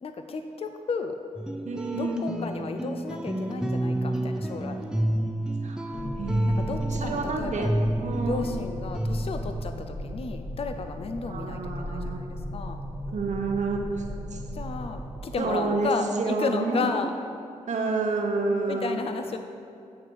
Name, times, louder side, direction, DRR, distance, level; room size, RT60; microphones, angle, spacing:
voice 1, 0.0-1.2 1.9-4.8 6.4-7.7 8.3-12.8 14.5-17.1 18.7-19.4, left 4 dB, 45° left, 7 dB, 0.5 m, -33 dB
sound 1, 1.4-9.6, right 1 dB, 5° right, 0.6 m, -30 dB
voice 2, 1.6-2.3 5.6-7.7 8.0-8.5 11.3-12.3 13.1-14.1 14.3-14.4 15.4-16.9 17.7-19.0, right 3 dB, 60° right, 3 dB, 0.8 m, -29 dB
sound 2, 5.9-15.2, equal, 15° left, 1.3 m, -36 dB
8.4 x 3.3 x 6.0 m, 2.6 s
cardioid pair, 50°, 13 cm